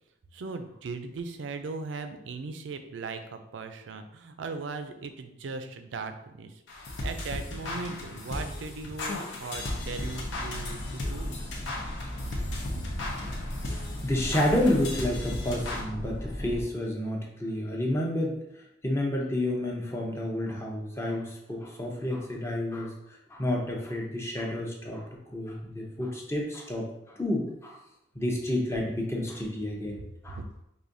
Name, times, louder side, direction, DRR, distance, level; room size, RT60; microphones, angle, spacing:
voice 1, 0.3-6.5 7.0-11.4 12.7-12.8 30.3-30.4, right 4 dB, 90° right, 8 dB, 0.4 m, -38 dB
sound 1, 6.7-15.8, left 2 dB, 85° left, 0.7 m, -36 dB
sound 2, 9.7-16.6, left 1 dB, 50° left, 0.8 m, -37 dB
voice 2, 14.0-18.4 18.8-27.8 28.1-30.4, left 1 dB, 15° left, -1 dB, 0.6 m, -30 dB
4.8 x 2.6 x 2.6 m, 0.84 s
head